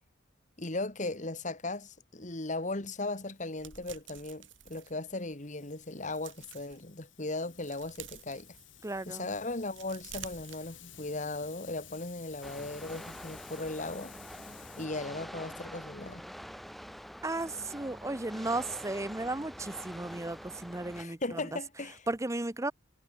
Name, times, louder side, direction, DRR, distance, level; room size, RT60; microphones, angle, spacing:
voice 1, 0.6-8.6 9.1-14.1 14.8-16.2 21.0-22.0, left 2 dB, 40° left, 2.2 m, -37 dB
Hiss, 2.9-14.9, left 9 dB, 80° left, 6.1 m, -55 dB
sound 1, 3.6-5.5 5.9-6.8 7.3-9.0 9.5-11.2 11.5-11.7, right 10 dB, 80° right, 7.1 m, -50 dB
voice 2, 8.8-9.3 17.2-21.6 22.1-22.7, right 2 dB, 15° right, 0.8 m, -35 dB
sound 2, 12.4-21.0, equal, ahead, 6.1 m, -46 dB
head